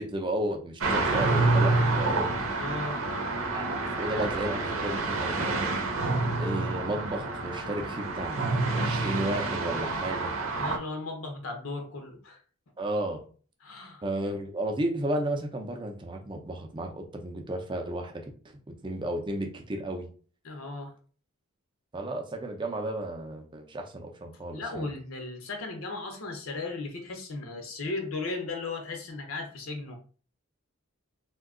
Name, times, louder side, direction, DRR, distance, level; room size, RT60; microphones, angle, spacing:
voice 1, 0.0-2.3 3.5-5.7 6.3-10.3 12.8-13.2 14.0-20.1 21.9-24.9, right 1 dB, 20° right, 0.5 m, -33 dB
sound 1, 0.8-10.8, right 3 dB, 75° right, 0.7 m, -28 dB
voice 2, 2.6-3.1 10.5-12.4 13.6-14.0 20.4-20.9 24.5-30.0, left 3 dB, 70° left, 0.7 m, -36 dB
2.7 x 2.2 x 3.6 m
head